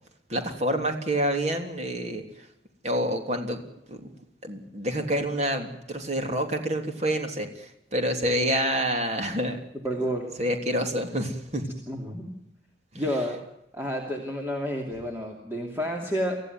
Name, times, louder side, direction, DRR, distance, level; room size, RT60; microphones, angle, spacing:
voice 1, 0.3-2.2 2.8-3.6 3.9-4.0 4.4-9.6 10.4-11.6 13.0-13.1, equal, 35° right, 5 dB, 3.3 m, -27 dB
voice 2, 9.8-10.3 11.9-12.3 12.9-13.4 13.7-16.4, equal, 15° right, 0 dB, 2.8 m, -30 dB
25.5 x 15.0 x 9.6 m, 0.83 s
head